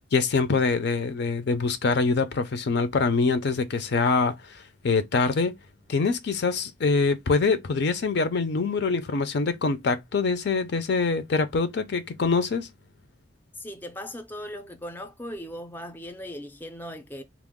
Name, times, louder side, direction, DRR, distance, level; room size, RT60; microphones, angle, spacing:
voice 1, 0.1-4.4 4.8-5.5 5.9-12.7, left 4 dB, 65° left, 0.5 m, -24 dB
voice 2, 13.5-17.2, equal, 10° left, 0.4 m, -38 dB
2.9 x 2.0 x 3.6 m
head